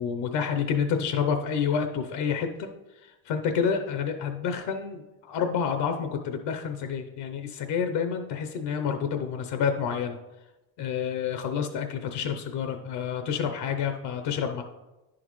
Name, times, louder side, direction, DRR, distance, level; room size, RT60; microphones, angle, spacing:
voice 1, 0.0-2.7 3.0-10.2 10.8-14.6, left 7 dB, 85° left, 6 dB, 0.8 m, -29 dB
10.0 x 6.3 x 3.1 m, 1.0 s
cardioid pair, 180°, 40 cm